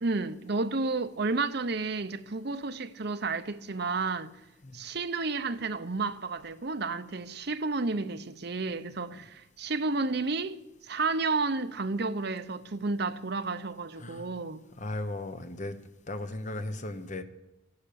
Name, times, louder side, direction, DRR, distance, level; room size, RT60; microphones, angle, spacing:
voice 1, 0.0-4.3 4.7-10.6 10.9-14.6, right 3 dB, 50° right, 0.8 m, -31 dB
voice 2, 14.8-15.7 16.1-17.2, left 2 dB, 35° left, 1.1 m, -36 dB
15.5 x 11.5 x 7.0 m
head